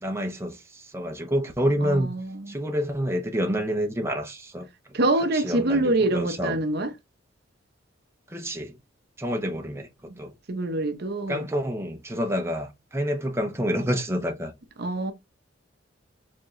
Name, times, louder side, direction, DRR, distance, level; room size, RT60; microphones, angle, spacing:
voice 1, 0.0-2.1 2.5-4.7 5.3-6.6 8.3-8.8 9.2-9.9 10.2-10.3 11.3-14.5, equal, 15° right, 0.7 m, -28 dB
voice 2, 1.8-2.6 4.9-6.9 10.1-10.2 10.5-11.5 14.8-15.1, right 2 dB, 55° right, 0.8 m, -25 dB
4.6 x 3.6 x 3.0 m
head